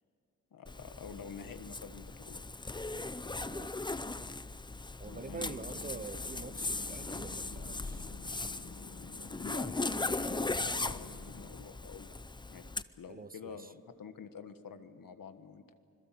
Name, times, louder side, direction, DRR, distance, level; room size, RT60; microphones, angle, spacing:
voice 1, 0.5-2.4 5.2-5.6 9.4-12.2 12.5-12.7 13.0-15.7, left 6 dB, 75° left, 9 dB, 1.5 m, -48 dB
Zipper (clothing), 0.7-12.8, left 3 dB, 15° left, 0.6 m, -38 dB
sound 1, 5.0-11.6, left 5 dB, 60° left, 1.5 m, -51 dB
voice 2, 5.0-8.1 13.1-13.7, right 4 dB, 25° right, 14 dB, 0.7 m, -46 dB
26.0 x 22.0 x 7.6 m, 2.7 s
wide cardioid pair, 100°, 34 cm